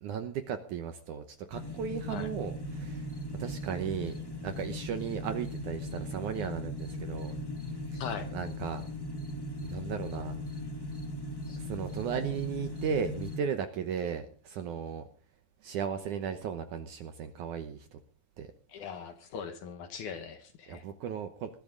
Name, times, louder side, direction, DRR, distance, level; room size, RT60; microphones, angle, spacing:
voice 1, 0.0-3.1 3.4-4.2 4.4-7.4 7.9-8.0 8.3-8.8 9.6-10.4 11.6-15.0 15.6-18.0 18.4-18.5 20.7-21.5, right 7 dB, 70° right, 9 dB, 2.0 m, -36 dB
sound 1, 1.5-13.4, left 1 dB, 15° left, 0.8 m, -38 dB
voice 2, 7.9-8.3 11.5-11.6 18.7-20.8, left 6 dB, 60° left, 8 dB, 2.4 m, -40 dB
20.0 x 14.0 x 3.8 m, 0.39 s
omnidirectional pair, 4.6 m